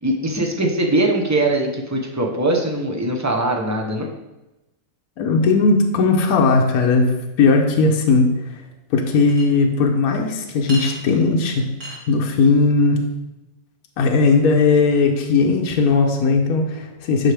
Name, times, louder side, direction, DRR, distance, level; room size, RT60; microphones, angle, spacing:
voice 1, 0.0-4.1, right 2 dB, 20° right, 1 dB, 0.5 m, -21 dB
voice 2, 5.2-8.6 8.9-11.7 12.1-13.0 14.0-17.3, left 4 dB, 60° left, 1 dB, 1.2 m, -17 dB
Chink clink, 9.3-9.4 10.7-11.0 11.8-12.0, equal, 45° right, 2.2 m, -31 dB
12.0 x 4.6 x 3.4 m, 0.99 s
omnidirectional pair, 1.9 m